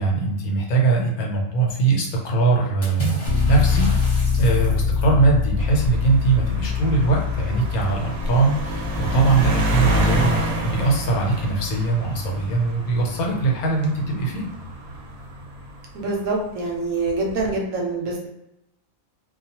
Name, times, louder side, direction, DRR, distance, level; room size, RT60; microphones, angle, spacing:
voice 1, 0.0-14.5, right 3 dB, 90° left, -1 dB, 1.2 m, -21 dB
Water / Splash splatter, 2.8-5.2, equal, 15° left, 0.5 m, -33 dB
Bass guitar, 3.3-9.5, left 5 dB, 65° left, 0.7 m, -24 dB
sound 1, 5.6-16.3 17.1-17.5, equal, 85° right, 1.1 m, -28 dB
voice 2, 15.9-18.3, right 3 dB, 70° right, -1 dB, 0.9 m, -25 dB
2.4 x 2.3 x 2.8 m, 0.87 s
omnidirectional pair, 1.5 m